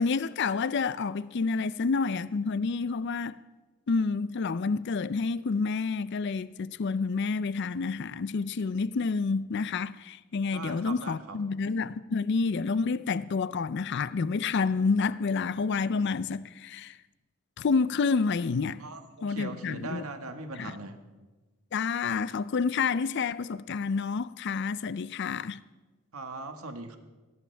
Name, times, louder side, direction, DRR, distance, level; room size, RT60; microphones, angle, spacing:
voice 1, 0.0-3.4 3.9-17.0 17.6-18.8 19.2-20.0 20.6-20.7 21.7-25.6, left 4 dB, 50° left, 0.4 m, -29 dB
voice 2, 10.5-11.4 18.8-21.0 26.1-27.0, right 2 dB, 80° right, 1.5 m, -40 dB
20.5 x 17.5 x 3.4 m
head